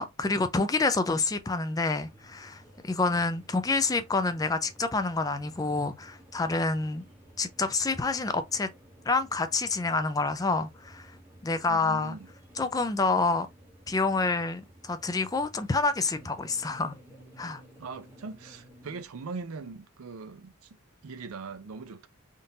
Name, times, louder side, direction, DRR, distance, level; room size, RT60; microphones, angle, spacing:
voice 1, 0.0-7.0 7.4-8.7 9.1-11.1 11.4-12.2 12.6-13.5 13.9-16.9 17.4-17.6, left 3 dB, 15° left, 0.3 m, -28 dB
sound 1, 1.8-19.1, right 1 dB, 10° right, 0.8 m, -54 dB
voice 2, 11.7-12.3 17.8-20.8 21.0-22.1, right 4 dB, 90° right, 0.5 m, -41 dB
3.7 x 2.5 x 2.7 m
head